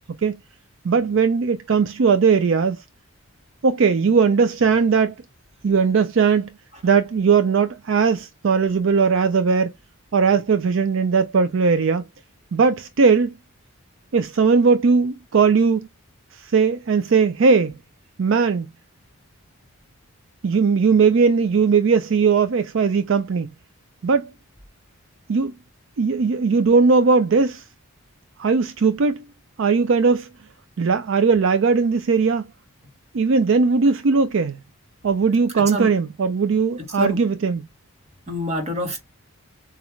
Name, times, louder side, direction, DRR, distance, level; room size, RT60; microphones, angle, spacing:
voice 1, 0.8-2.8 3.6-5.1 5.6-6.5 6.8-9.7 10.1-12.0 12.5-13.3 14.1-15.9 16.3-17.8 18.2-18.7 20.4-23.5 24.0-24.3 25.3-25.5 26.0-27.6 28.4-29.2 29.6-30.3 30.8-32.5 33.1-34.6 35.0-37.6, right 5 dB, 55° right, 0.4 m, -18 dB
voice 2, 35.6-35.9 36.8-37.2 38.3-39.0, equal, 30° right, 1.3 m, -27 dB
7.0 x 2.4 x 3.1 m
head